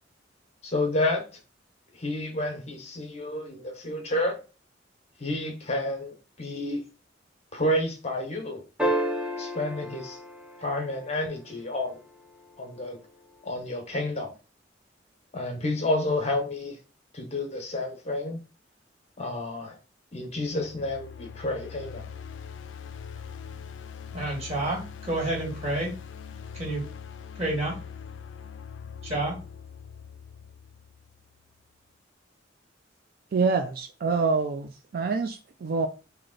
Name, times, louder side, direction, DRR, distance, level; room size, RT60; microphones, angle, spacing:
voice 1, 0.6-1.2 2.0-4.4 5.2-6.8 7.5-8.6 9.4-10.2 10.6-12.0 12.6-13.0 13.4-14.3 15.3-16.8 17.1-18.4 19.2-19.8 20.1-22.0, left 1 dB, 35° left, 3 dB, 1.0 m, -30 dB
sound 1, 8.8-11.3 13.5-13.6, right 1 dB, 5° right, 0.8 m, -30 dB
sound 2, 20.4-31.4, left 7 dB, 85° left, 0.4 m, -42 dB
voice 2, 24.1-25.9 26.5-26.8 27.4-27.8 29.0-29.4, right 2 dB, 35° right, -3 dB, 2.0 m, -29 dB
voice 3, 33.3-35.9, right 4 dB, 55° right, 6 dB, 0.4 m, -26 dB
3.2 x 2.8 x 3.9 m, 0.32 s
head